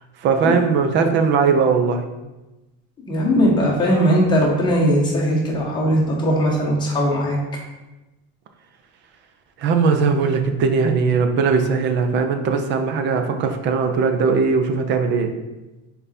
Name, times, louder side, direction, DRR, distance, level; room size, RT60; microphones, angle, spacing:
voice 1, 0.2-2.0 9.6-15.3, right 5 dB, 35° right, 6 dB, 0.5 m, -19 dB
voice 2, 3.1-7.4, equal, 15° left, -4 dB, 1.1 m, -19 dB
5.5 x 4.1 x 4.2 m, 1.1 s
cardioid pair, 175°, 33 cm